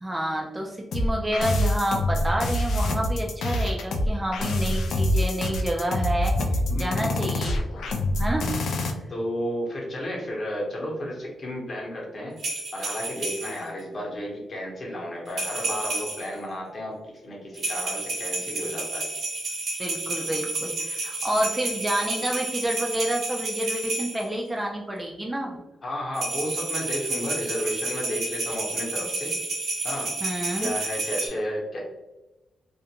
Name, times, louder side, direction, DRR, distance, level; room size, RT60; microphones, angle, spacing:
voice 1, 0.0-7.6 8.2-8.5 19.8-25.6 30.2-30.7, right 1 dB, 15° right, 0 dB, 0.3 m, -29 dB
sound 1, 0.9-8.9, left 1 dB, 85° left, 0.3 m, -25 dB
voice 2, 6.7-7.1 9.1-12.4 12.7-17.0 17.2-19.1 25.8-29.4 29.8-30.1 30.6-31.8, equal, 40° left, -2 dB, 0.9 m, -32 dB
sound 2, 12.4-13.7 15.3-16.4 17.5-24.2 26.1-31.3, right 2 dB, 65° right, 0.9 m, -31 dB
2.4 x 2.1 x 2.8 m, 1.0 s
cardioid pair, 115°, 0 cm